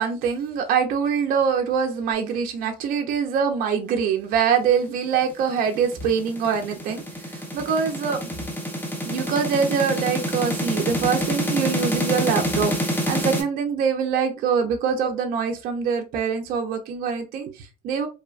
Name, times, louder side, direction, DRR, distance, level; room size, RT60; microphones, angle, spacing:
voice 1, 0.0-8.4 9.0-18.1, right 6 dB, 65° right, 0.5 m, -24 dB
sound 1, 5.3-13.4, equal, 10° left, 0.6 m, -27 dB
2.7 x 2.1 x 2.3 m
cardioid pair, 140°, 16 cm